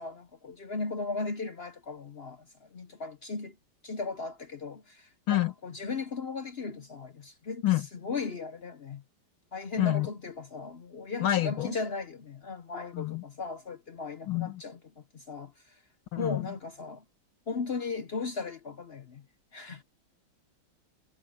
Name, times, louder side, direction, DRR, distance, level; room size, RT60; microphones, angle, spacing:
voice 1, 0.0-2.4 2.7-3.6 3.8-7.6 8.0-9.0 9.5-14.8 15.1-15.7 16.2-17.0 17.5-19.2 19.5-19.8, left 4 dB, 60° left, 0.6 m, -37 dB
voice 2, 9.8-10.1 11.2-11.7 12.9-13.2 14.3-14.6 16.1-16.5, left 14 dB, 85° left, 2.4 m, -28 dB
omnidirectional pair, 2.2 m